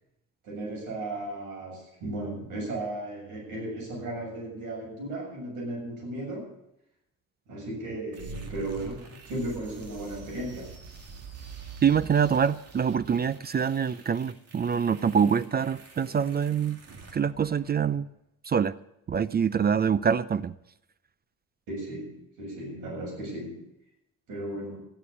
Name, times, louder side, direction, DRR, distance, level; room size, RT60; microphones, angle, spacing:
voice 1, 0.4-6.5 7.5-10.8 21.7-23.6 24.3-24.8, right 1 dB, 85° right, 7.3 m, -35 dB
sound 1, 8.1-18.1, right 4 dB, 55° right, 2.3 m, -46 dB
voice 2, 11.8-16.8 17.1-18.1 18.4-18.7 19.1-20.5, right 7 dB, 30° right, 0.5 m, -25 dB
13.0 x 11.0 x 6.7 m
cardioid pair, 90°, 30 cm